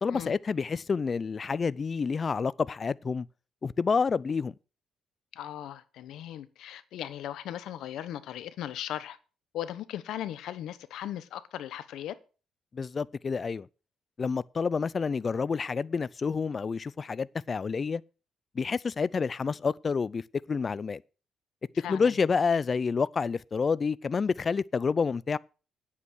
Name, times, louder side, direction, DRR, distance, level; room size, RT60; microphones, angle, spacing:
voice 1, 0.0-3.3 3.6-4.5 12.7-13.7 14.2-18.0 18.6-20.2 20.5-21.0 21.8-25.4, left 5 dB, 40° left, 0.4 m, -28 dB
voice 2, 5.3-9.2 9.5-12.2 21.8-22.2, left 11 dB, 80° left, 1.0 m, -38 dB
9.8 x 8.5 x 6.3 m
cardioid pair, 90°, 0 cm